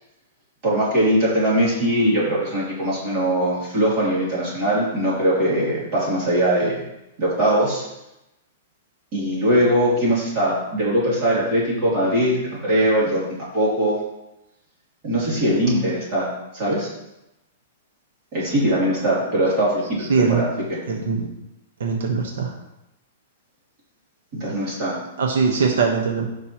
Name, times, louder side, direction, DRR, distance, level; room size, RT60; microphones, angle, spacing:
voice 1, 0.6-6.8 7.2-7.8 9.1-13.2 13.5-14.0 15.0-16.3 16.5-16.9 18.3-20.5 24.4-25.0 25.5-25.7, right 1 dB, 30° right, -6 dB, 3.0 m, -21 dB
voice 2, 20.1-20.4 20.9-21.3 21.8-22.5 25.2-26.3, right 5 dB, 80° right, 2 dB, 1.1 m, -21 dB
14.0 x 5.3 x 3.0 m, 0.91 s
supercardioid pair, 175°, 0 cm